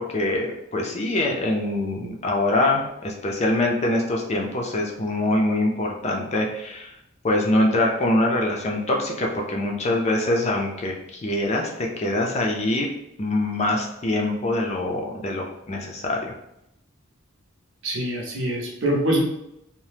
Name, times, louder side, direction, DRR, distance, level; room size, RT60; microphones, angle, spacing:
voice 1, 0.0-6.9 7.2-12.9 13.2-16.3, left 1 dB, 35° left, 0 dB, 0.4 m, -24 dB
voice 2, 17.8-19.2, right 1 dB, 70° right, 0 dB, 0.7 m, -24 dB
2.8 x 2.0 x 3.2 m, 0.82 s
head